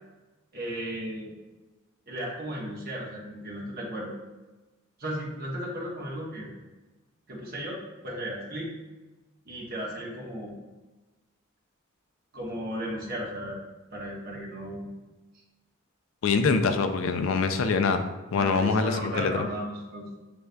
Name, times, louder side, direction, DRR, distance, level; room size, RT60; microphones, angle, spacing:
voice 1, 0.5-1.3 2.1-4.1 5.0-6.5 7.3-8.7 9.4-10.6 12.3-13.6 13.9-14.9 18.4-20.1, equal, 45° right, -4 dB, 1.1 m, -35 dB
voice 2, 16.2-18.0 18.3-19.3, left 4 dB, 70° left, 7 dB, 0.4 m, -24 dB
6.7 x 3.4 x 2.2 m, 1.2 s
head